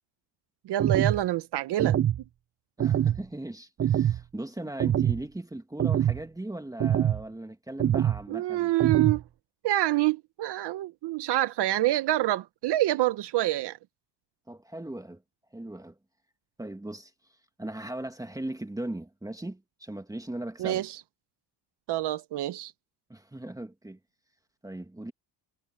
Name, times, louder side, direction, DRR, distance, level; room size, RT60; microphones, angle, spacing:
voice 1, 0.6-2.0 8.3-9.2 9.6-13.8 20.6-21.0 21.9-22.7, right 15 dB, 60° right, 1.0 m, -26 dB
sound 1, 0.8-1.2 1.8-2.2 2.8-3.2 3.8-4.2 4.8-5.2 5.8-6.2 6.8-7.2 7.8-8.2 8.8-9.2, right 10 dB, 30° right, 0.6 m, -24 dB
voice 2, 2.8-8.7 14.5-15.2 15.5-16.0 16.6-17.1 17.6-20.8 23.1-24.0 24.6-25.1, right 1 dB, 5° right, 2.0 m, -38 dB
cardioid pair, 105°, 46 cm